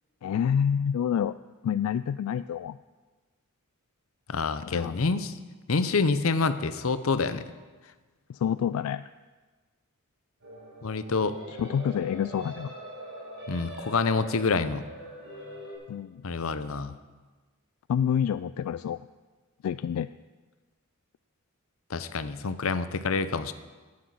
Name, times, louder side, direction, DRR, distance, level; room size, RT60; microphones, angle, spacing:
voice 1, 0.2-1.3 1.6-2.8 4.6-5.0 8.3-9.0 11.5-12.7 15.9-16.2 17.9-19.0 19.6-20.1, left 8 dB, 90° left, 14 dB, 0.3 m, -28 dB
voice 2, 4.3-5.4 5.7-7.4 10.8-11.4 13.5-14.9 16.2-17.0 21.9-23.5, left 4 dB, 70° left, 12 dB, 0.7 m, -27 dB
sound 1, 10.4-15.8, right 1 dB, 60° right, 4.9 m, -43 dB
10.0 x 9.6 x 7.6 m, 1.3 s
head